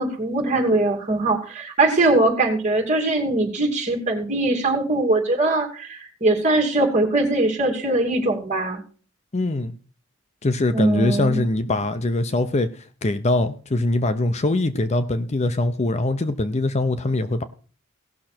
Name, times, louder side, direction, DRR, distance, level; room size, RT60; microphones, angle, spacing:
voice 1, 0.0-8.8 10.7-11.4, right 2 dB, 35° right, 2.6 m, -21 dB
voice 2, 9.3-9.8 10.4-17.4, left 2 dB, 35° left, 0.6 m, -22 dB
17.5 x 6.3 x 4.4 m
head